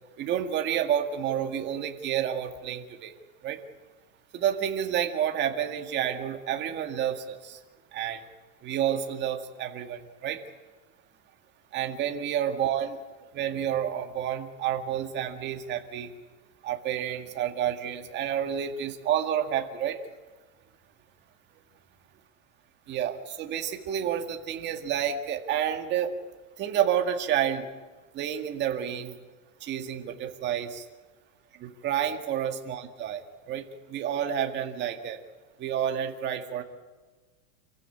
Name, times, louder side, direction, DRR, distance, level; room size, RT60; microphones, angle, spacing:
voice 1, 0.2-3.1 3.4-3.6 4.3-7.6 7.9-8.2 8.6-10.4 11.7-13.0 13.3-16.1 16.6-20.0 22.9-26.1 26.6-27.7 28.1-29.2 29.6-30.8 31.6-33.2 33.5-35.2 35.6-36.6, right 9 dB, 25° right, 4 dB, 2.1 m, -29 dB
28.0 x 15.5 x 8.7 m, 1.3 s
supercardioid pair, 175°, 42 cm